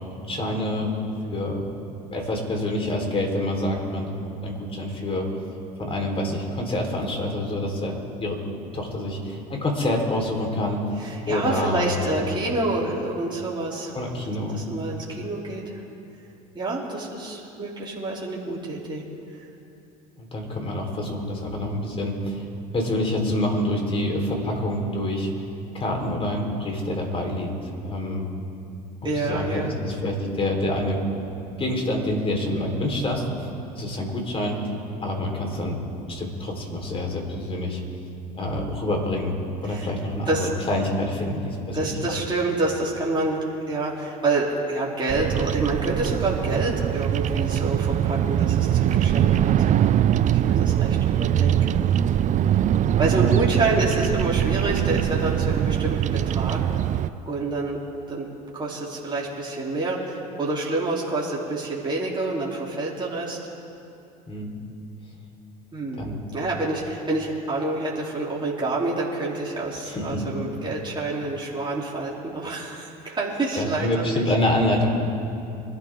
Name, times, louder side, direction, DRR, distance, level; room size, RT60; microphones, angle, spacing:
voice 1, 0.2-0.9 1.3-1.6 2.1-5.3 5.8-8.4 8.7-10.8 11.3-12.4 13.9-14.6 20.2-22.4 22.7-25.3 25.7-27.5 27.8-28.3 29.2-31.0 31.6-33.3 33.7-34.7 35.0-35.8 36.1-37.8 38.3-39.3 39.6-42.1 64.3-64.5 66.0-66.2 69.9-70.3 73.6-74.9, left 1 dB, 30° left, 1 dB, 4.3 m, -27 dB
voice 2, 11.0-13.9 14.5-15.8 16.5-19.0 29.0-29.8 39.6-39.9 40.3-40.5 41.7-49.7 50.2-51.8 53.0-56.6 57.3-57.8 58.1-58.3 58.5-63.4 65.7-66.0 66.3-74.3, right 2 dB, 25° right, -5 dB, 3.6 m, -27 dB
Bird vocalization bird call bird song, 45.1-57.1, right 10 dB, 40° right, 0.5 m, -22 dB
25.0 x 13.0 x 3.8 m, 2.6 s
hypercardioid pair, 75°, 20 cm